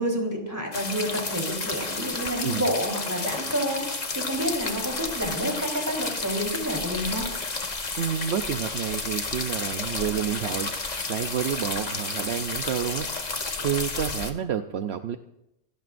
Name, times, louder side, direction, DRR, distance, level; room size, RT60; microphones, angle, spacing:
voice 1, 0.0-7.3, equal, 15° right, 0 dB, 3.6 m, -29 dB
sound 1, 0.7-14.3, left 3 dB, 35° left, 1.3 m, -31 dB
voice 2, 8.0-13.1 13.3-15.2, right 9 dB, 65° right, 8 dB, 0.9 m, -29 dB
27.5 x 17.5 x 2.6 m, 0.88 s
omnidirectional pair, 1.2 m